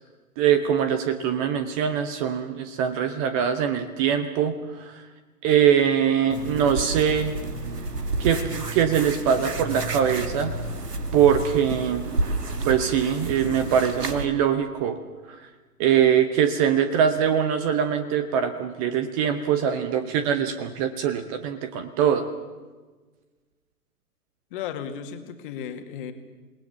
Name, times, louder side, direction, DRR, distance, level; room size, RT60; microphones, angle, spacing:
voice 1, 0.4-5.0 5.4-7.3 8.2-10.5 11.1-12.0 12.6-15.0 15.3-15.4 15.8-22.3, right 8 dB, 20° right, 10 dB, 1.0 m, -22 dB
sound 1, 6.3-14.3, right 2 dB, 80° right, 2.3 m, -30 dB
voice 2, 24.5-26.1, left 8 dB, 35° left, 7 dB, 2.2 m, -34 dB
27.5 x 19.0 x 7.1 m, 1.3 s
figure-of-eight pair, 125°, 47 cm